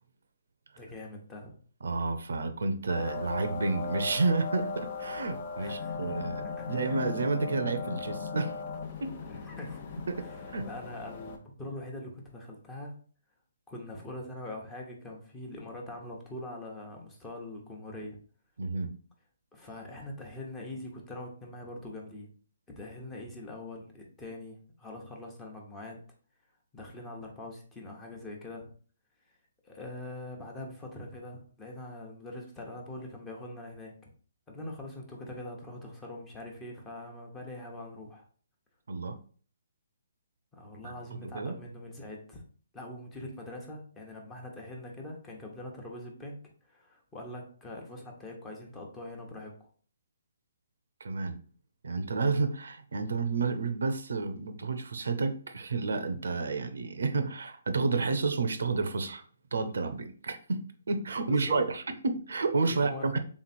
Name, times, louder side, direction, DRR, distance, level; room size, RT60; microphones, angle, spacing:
voice 1, 0.8-1.6 5.6-6.1 6.6-6.8 9.2-12.9 13.7-18.2 19.5-22.3 22.8-26.0 26.7-28.7 29.6-34.1 34.5-38.3 40.5-42.4 42.7-46.4 46.7-49.5 61.3-61.7 62.6-63.2, left 1 dB, 15° left, 0 dB, 1.0 m, -43 dB
voice 2, 1.8-8.6 9.0-9.2 10.1-10.3 10.5-10.7 18.6-18.9 38.9-39.2 40.8-40.9 41.2-41.5 51.0-51.4 51.8-59.2 59.5-63.2, right 3 dB, 75° right, 9 dB, 0.6 m, -30 dB
sound 1, 2.9-11.4, left 5 dB, 40° left, 0.8 m, -38 dB
3.6 x 3.1 x 4.2 m, 0.44 s
hypercardioid pair, 150°, 0 cm